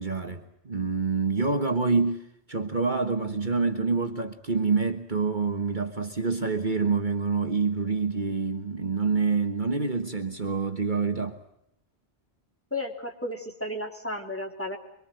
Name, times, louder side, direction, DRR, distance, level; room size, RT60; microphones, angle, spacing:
voice 1, 0.0-2.2 2.5-11.4, right 4 dB, 45° right, 6 dB, 1.6 m, -27 dB
voice 2, 12.7-14.8, left 1 dB, 10° left, 2 dB, 3.4 m, -33 dB
24.5 x 23.5 x 7.7 m, 0.78 s
omnidirectional pair, 1.1 m